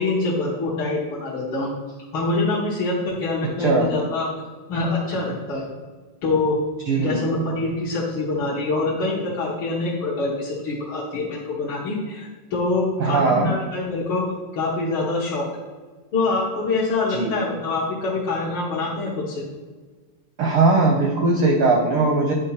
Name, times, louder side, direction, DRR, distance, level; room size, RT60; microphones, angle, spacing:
voice 1, 0.0-1.7 2.1-4.3 4.7-5.7 6.2-6.6 7.0-14.2 14.5-15.5 16.1-19.4, left 3 dB, 60° left, -7 dB, 1.6 m, -25 dB
voice 2, 6.9-7.2 13.0-13.5 17.1-17.3 20.4-22.3, right 3 dB, 75° right, 0 dB, 1.2 m, -19 dB
9.6 x 3.6 x 4.2 m, 1.4 s
omnidirectional pair, 3.4 m